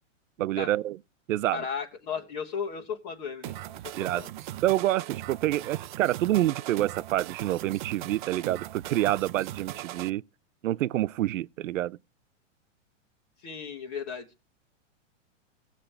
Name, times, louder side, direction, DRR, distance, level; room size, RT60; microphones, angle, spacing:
voice 1, 0.4-1.0 1.3-1.6 4.0-4.3 4.6-10.2 10.6-12.0, right 14 dB, 85° right, 0.6 m, -27 dB
voice 2, 1.5-3.5 3.8-4.3 13.4-14.3, left 6 dB, 35° left, 1.3 m, -35 dB
sound 1, 3.4-10.1, right 14 dB, 40° right, 0.5 m, -39 dB
17.5 x 7.3 x 3.4 m
supercardioid pair, 160°, 38 cm